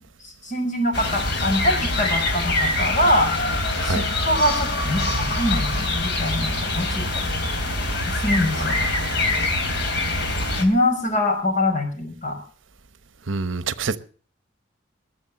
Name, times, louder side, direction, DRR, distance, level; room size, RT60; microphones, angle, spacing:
voice 1, 0.2-3.3 3.8-7.3 8.1-8.7 10.6-12.4, left 1 dB, 40° left, 5.6 m, -24 dB
sound 1, 0.9-10.7, left 2 dB, 60° left, 3.5 m, -24 dB
voice 2, 13.3-14.0, right 4 dB, 80° right, 1.0 m, -26 dB
21.5 x 7.4 x 7.5 m
head